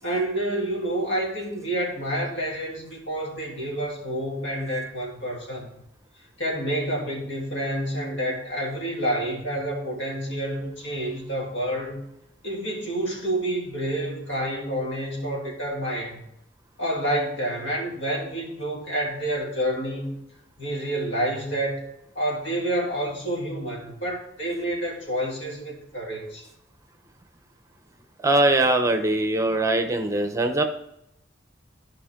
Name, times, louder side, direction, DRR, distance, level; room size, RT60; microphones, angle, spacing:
voice 1, 0.0-5.7 6.4-12.0 12.4-16.2 16.8-20.2 20.6-21.8 22.1-26.5, right 1 dB, 75° left, -3 dB, 3.1 m, -28 dB
voice 2, 28.2-30.6, right 2 dB, 15° right, 6 dB, 0.8 m, -21 dB
13.0 x 5.1 x 3.7 m, 0.79 s
head